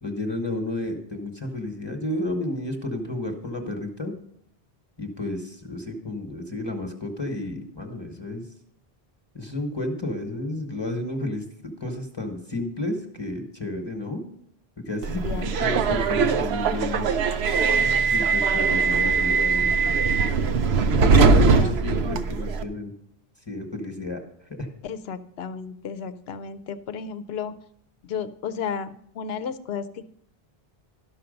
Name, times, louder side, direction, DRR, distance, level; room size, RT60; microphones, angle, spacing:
voice 1, 0.0-4.1 5.0-8.4 9.3-14.2 14.9-17.1 18.1-19.9 20.9-22.9 23.5-24.2 24.6-24.7, left 1 dB, 25° left, 4 dB, 1.1 m, -31 dB
Subway metro underground, 15.0-22.6, right 4 dB, 85° right, 0.9 m, -21 dB
voice 2, 15.2-15.8 21.4-21.7 22.1-22.2 24.8-27.5 28.0-30.1, left 6 dB, 80° left, 11 dB, 0.8 m, -33 dB
12.5 x 5.7 x 5.1 m, 0.69 s
omnidirectional pair, 1.0 m